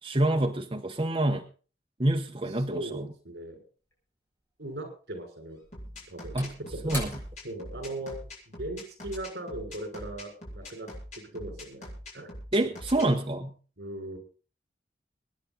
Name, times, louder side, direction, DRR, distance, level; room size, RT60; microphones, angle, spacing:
voice 1, 0.0-1.4 2.0-3.1 6.3-6.5 6.8-7.1 12.5-13.5, right 1 dB, 30° right, 3 dB, 1.1 m, -27 dB
voice 2, 2.7-3.6 4.6-5.6 6.1-7.0 7.4-8.2 8.5-11.9 12.1-12.3 12.6-13.1 13.8-14.2, right 1 dB, 70° right, 4 dB, 6.0 m, -39 dB
Slam / Wood, 3.9-4.0 5.5-10.2 10.5-10.7, equal, 15° left, 7.4 m, -43 dB
sound 1, 5.7-13.1, left 1 dB, 45° left, 6.7 m, -42 dB
24.5 x 10.0 x 4.0 m, 0.39 s
head